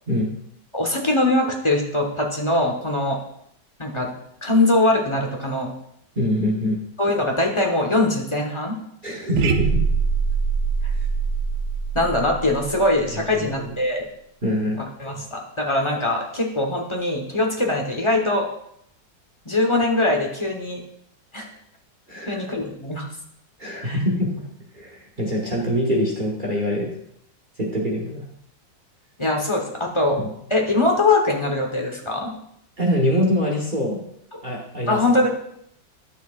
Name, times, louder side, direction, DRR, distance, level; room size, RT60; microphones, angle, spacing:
voice 1, 0.7-3.2 3.8-4.1 4.4-5.7 7.0-8.8 11.9-14.1 15.0-18.5 19.4-20.8 21.3-21.5 22.3-23.0 23.8-24.0 29.2-30.2 30.5-32.3 34.9-35.3, left 2 dB, 20° left, 1 dB, 0.9 m, -22 dB
voice 2, 6.2-6.8 9.0-9.8 13.3-13.7 14.4-14.8 22.1-22.4 23.6-24.4 24.7-26.9 27.6-28.2 32.8-34.0 34.4-35.0, equal, 30° right, -2 dB, 1.2 m, -24 dB
sound 1, 9.3-13.5, right 5 dB, 70° right, 1.3 m, -24 dB
11.0 x 6.9 x 2.5 m, 0.72 s
omnidirectional pair, 1.9 m